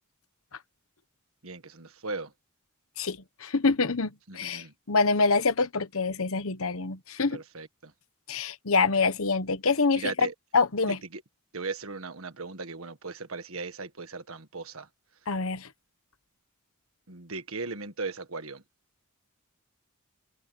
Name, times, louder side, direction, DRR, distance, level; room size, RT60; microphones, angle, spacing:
voice 1, 1.4-2.3 4.3-4.7 7.3-7.9 10.0-10.3 10.9-11.2 11.5-14.9 17.1-18.6, right 4 dB, 65° right, 1.7 m, -37 dB
voice 2, 3.0-7.4 8.3-10.3 10.5-11.0 15.3-15.7, left 4 dB, 65° left, 1.1 m, -26 dB
head